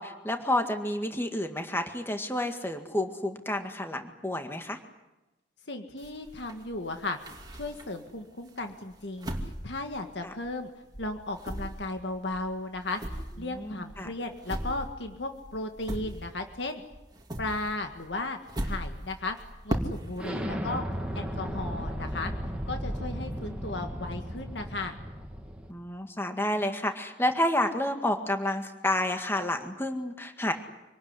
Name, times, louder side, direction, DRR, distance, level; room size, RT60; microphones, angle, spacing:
voice 1, 0.0-4.8 10.2-10.3 13.4-14.1 25.7-30.5, left 1 dB, 15° left, 5 dB, 1.9 m, -30 dB
voice 2, 5.7-7.2 7.5-10.7 11.0-16.8 17.4-18.4 18.6-19.4 19.6-20.8 21.1-22.3 22.7-25.0, left 2 dB, 70° left, 5 dB, 1.9 m, -35 dB
sound 1, 6.0-8.1 8.6-10.7 10.9-16.6 16.9-20.3, equal, 20° right, 2.7 m, -38 dB
Explosion, 20.2-25.7, equal, 5° right, 2.8 m, -35 dB
26.5 x 19.5 x 9.8 m, 1.0 s
head